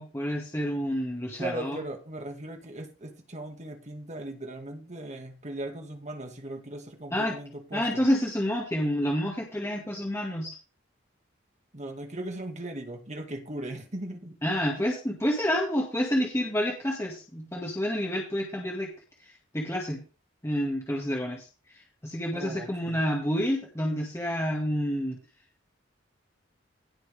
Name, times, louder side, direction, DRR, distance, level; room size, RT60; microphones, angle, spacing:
voice 1, 0.0-1.8 7.1-7.4 7.7-10.6 14.4-18.9 19.2-20.0 20.4-25.2, equal, 15° left, -1 dB, 2.0 m, -29 dB
voice 2, 1.4-8.1 11.7-14.4 22.3-23.0, right 1 dB, 35° right, 4 dB, 2.1 m, -38 dB
17.5 x 6.2 x 3.5 m, 0.34 s
head